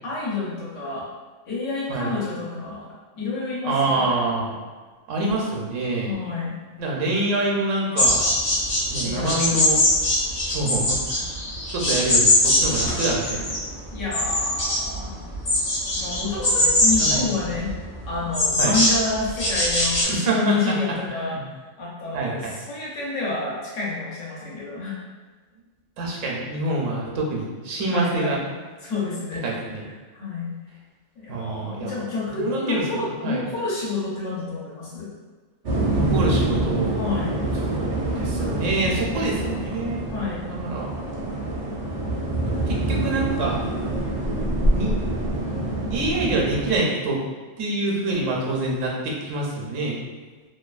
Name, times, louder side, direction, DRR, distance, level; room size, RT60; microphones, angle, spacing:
voice 1, 0.0-1.1 1.5-2.9 3.2-4.2 6.0-6.6 9.0-9.6 13.9-15.3 15.9-17.7 18.1-21.4 21.8-25.0 27.9-28.5 28.8-29.4 30.1-30.5 31.2-35.1 37.0-37.4 40.1-40.5, left 3 dB, 75° left, -6 dB, 1.1 m, -29 dB
voice 2, 3.6-4.5 5.1-6.1 6.8-8.3 8.9-9.8 10.5-11.4 11.7-13.5 16.6-17.2 18.6-18.8 20.0-20.8 21.1-21.4 22.1-22.5 26.0-28.4 29.4-29.8 31.3-32.0 32.4-33.4 35.9-37.0 37.6-40.1 40.5-40.9 42.7-43.6 44.7-45.0 45.9-47.2 47.6-50.0, right 2 dB, 80° right, -2 dB, 0.9 m, -26 dB
sound 1, 8.0-20.0, left 1 dB, 50° left, 0.7 m, -22 dB
sound 2, 35.6-46.8, right 1 dB, 55° right, 0.6 m, -26 dB
2.6 x 2.2 x 2.3 m, 1.4 s
omnidirectional pair, 1.3 m